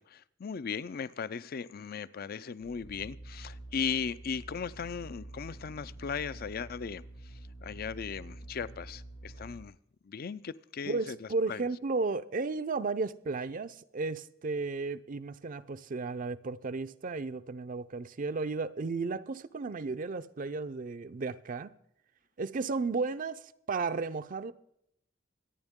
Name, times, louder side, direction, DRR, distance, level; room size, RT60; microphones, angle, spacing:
voice 1, 0.0-9.8 10.0-11.7, left 6 dB, 55° left, 0.5 m, -37 dB
sound 1, 2.6-9.6, right 1 dB, 75° left, 2.3 m, -47 dB
voice 2, 10.9-21.7 22.4-24.5, right 4 dB, 45° right, 0.5 m, -34 dB
25.5 x 9.7 x 3.6 m
head